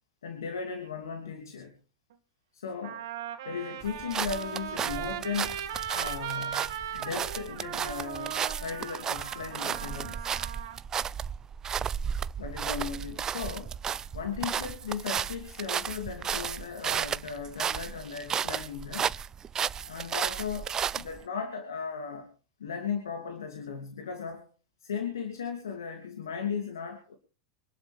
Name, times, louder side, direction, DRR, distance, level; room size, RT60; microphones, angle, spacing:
voice 1, 0.2-1.7 2.5-3.1 3.4-5.6 5.9-10.3 12.4-13.7 14.1-19.1 19.8-22.3 22.6-24.5 24.8-27.1, left 6 dB, 80° left, 5 dB, 2.8 m, -37 dB
Trumpet, 2.1-2.2 2.8-10.8, right 9 dB, 70° right, 2.4 m, -38 dB
sound 1, 3.8-21.2, right 8 dB, 30° right, 0.6 m, -33 dB
25.0 x 12.0 x 3.5 m, 0.38 s
hypercardioid pair, 85°, 2 cm